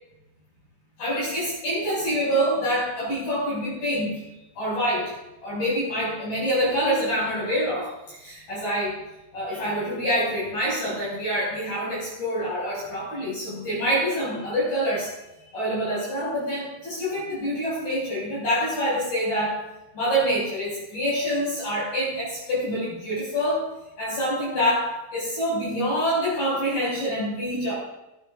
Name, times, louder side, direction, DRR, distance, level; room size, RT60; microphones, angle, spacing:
voice 1, 1.0-5.1 5.4-9.0 9.3-15.1 15.5-19.6 19.9-23.7 24.0-27.7, equal, 45° left, -7 dB, 7.8 m, -26 dB
23.5 x 12.5 x 2.6 m, 0.93 s
omnidirectional pair, 5.7 m